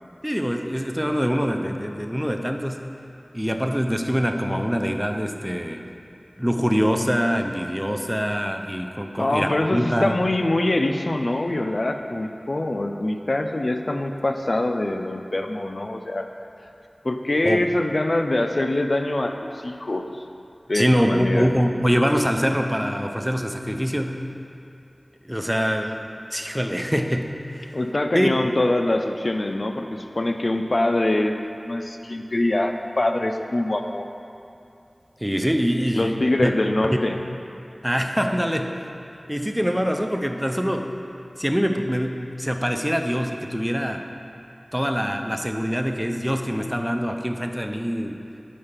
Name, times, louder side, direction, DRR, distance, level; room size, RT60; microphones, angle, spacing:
voice 1, 0.2-2.8 3.3-5.8 6.4-10.2 17.4-17.7 20.7-24.2 25.2-27.8 28.1-28.4 35.2-36.5 36.9-37.0 37.8-38.8 39.3-41.0 41.4-44.0 44.7-48.2, equal, 5° right, 4 dB, 0.5 m, -24 dB
voice 2, 9.2-16.3 17.0-20.1 20.7-21.5 27.7-31.4 31.6-34.1 35.9-37.2, left 1 dB, 60° left, 5 dB, 0.4 m, -24 dB
5.1 x 4.4 x 5.7 m, 2.7 s
wide cardioid pair, 45°, 0 cm